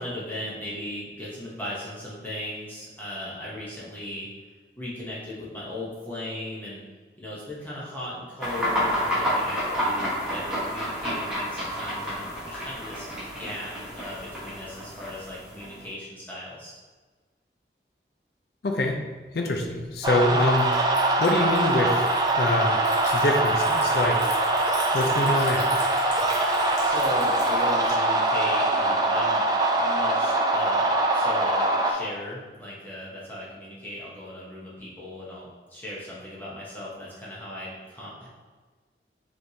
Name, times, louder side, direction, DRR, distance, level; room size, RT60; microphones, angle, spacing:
voice 1, 0.0-4.3 4.8-6.8 7.2-16.7 26.8-29.4 29.7-38.3, left 1 dB, 10° left, -7 dB, 0.8 m, -37 dB
sound 1, 8.4-15.9, equal, 5° right, 1.3 m, -30 dB
voice 2, 18.6-18.9 19.3-20.8 21.2-22.0 22.3-22.8 23.1-24.2 24.9-25.7, left 2 dB, 60° left, 2 dB, 0.5 m, -24 dB
Liquid, 19.6-27.9, left 1 dB, 40° left, 1.1 m, -40 dB
sound 2, 20.0-31.9, right 2 dB, 20° right, 0.4 m, -23 dB
5.0 x 3.1 x 2.7 m, 1.4 s
head